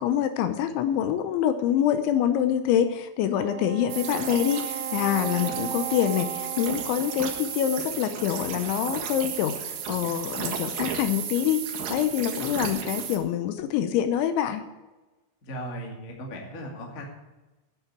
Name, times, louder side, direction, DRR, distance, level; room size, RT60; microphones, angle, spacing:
voice 1, 0.0-11.6 11.9-14.6, left 10 dB, 80° left, 9 dB, 3.0 m, -26 dB
Wind instrument woodwind instrument, 3.3-7.9, right 9 dB, 90° right, 3.5 m, -36 dB
sound 1, 3.9-13.2, right 7 dB, 60° right, 2.6 m, -33 dB
voice 2, 15.4-17.0, equal, 35° left, 0 dB, 1.2 m, -37 dB
9.7 x 8.3 x 8.6 m, 1.1 s
omnidirectional pair, 5.6 m